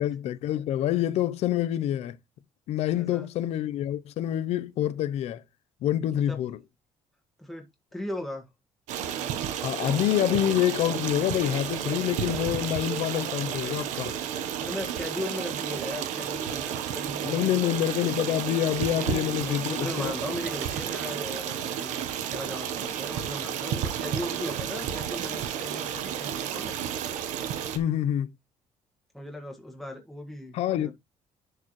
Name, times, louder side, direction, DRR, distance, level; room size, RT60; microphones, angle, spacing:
voice 1, 0.0-2.2 2.7-5.4 5.8-6.6 9.6-14.1 17.2-20.1 27.7-28.3 30.5-30.9, left 12 dB, 60° left, 0.7 m, -27 dB
voice 2, 2.9-3.3 6.3-6.4 7.4-7.6 7.9-8.5 14.6-17.7 19.0-26.8 29.1-30.9, left 1 dB, ahead, 1.8 m, -38 dB
Stream, 8.9-27.8, right 9 dB, 90° right, 1.1 m, -32 dB
10.5 x 4.8 x 3.1 m
cardioid pair, 170°, 12 cm